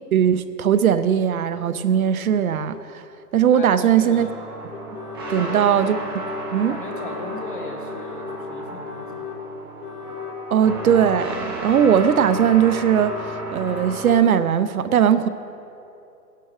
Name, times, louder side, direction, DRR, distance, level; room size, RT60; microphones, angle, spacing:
voice 1, 0.1-3.0 3.3-4.3 5.3-6.0 6.5-6.7 10.5-15.3, right 9 dB, 65° right, 13 dB, 0.5 m, -19 dB
sound 1, 2.7-2.8 3.7-3.8 4.7-5.5 5.9-6.5 6.9-7.5 7.9-8.4 8.8-9.4 9.8-10.4 10.8-11.3 11.7-12.3 12.7-13.3 13.7-14.3, left 7 dB, 75° left, 2.1 m, -37 dB
voice 2, 3.5-4.4 5.3-5.7 6.7-9.3, left 3 dB, 35° left, 3 dB, 1.1 m, -37 dB
sound 2, 4.1-14.2, right 2 dB, 15° right, 0.8 m, -34 dB
16.5 x 11.5 x 3.1 m, 2.8 s
hypercardioid pair, 175°, 47 cm